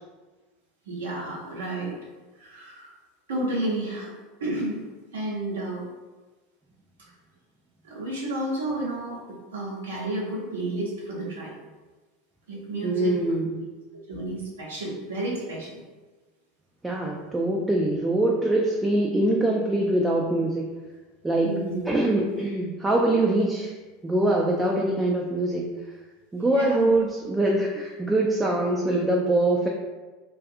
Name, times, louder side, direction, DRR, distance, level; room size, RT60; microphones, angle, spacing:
voice 1, 0.9-1.9 2.4-2.9 3.3-4.1 4.4-4.8 5.1-5.9 7.8-9.2 9.5-11.5 12.5-13.2 14.1-15.8 21.4-21.9 26.5-27.0, right 1 dB, 75° right, -4 dB, 0.8 m, -31 dB
voice 2, 12.8-13.7 16.8-20.7 21.2-21.5 21.8-23.7 24.0-25.7 26.3-29.7, right 1 dB, 15° right, -1 dB, 0.3 m, -23 dB
2.6 x 2.3 x 2.4 m, 1.3 s
hypercardioid pair, 80°, 0 cm